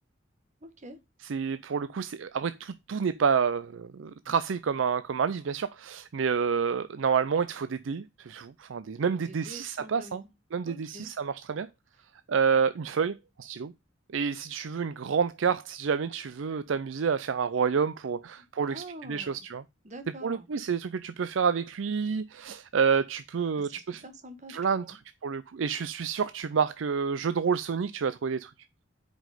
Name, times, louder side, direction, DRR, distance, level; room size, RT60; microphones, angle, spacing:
voice 1, 0.6-1.0 9.1-10.3 10.6-11.1 18.4-19.5 19.8-20.5 23.5-25.0, right 1 dB, 40° right, 1.4 m, -46 dB
voice 2, 1.2-10.2 10.5-11.7 12.3-13.7 14.1-19.6 20.2-24.0 24.5-28.5, right 6 dB, 80° right, 0.5 m, -29 dB
7.5 x 5.2 x 4.9 m
head